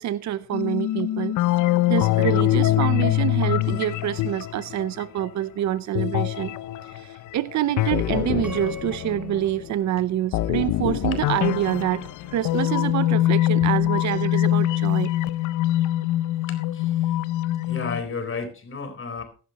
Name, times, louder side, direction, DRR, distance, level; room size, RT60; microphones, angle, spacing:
voice 1, 0.0-1.3 1.9-6.6 6.8-15.1, right 12 dB, 65° right, 0.7 m, -26 dB
sound 1, 0.5-5.3 6.0-9.7 10.3-18.0, left 15 dB, 80° left, 0.6 m, -24 dB
sound 2, 8.4-10.8, left 4 dB, 5° right, 4.2 m, -41 dB
voice 2, 16.5-17.2 17.6-19.2, left 4 dB, 45° left, 4.2 m, -33 dB
15.5 x 11.5 x 3.0 m
cardioid pair, 90°, 30 cm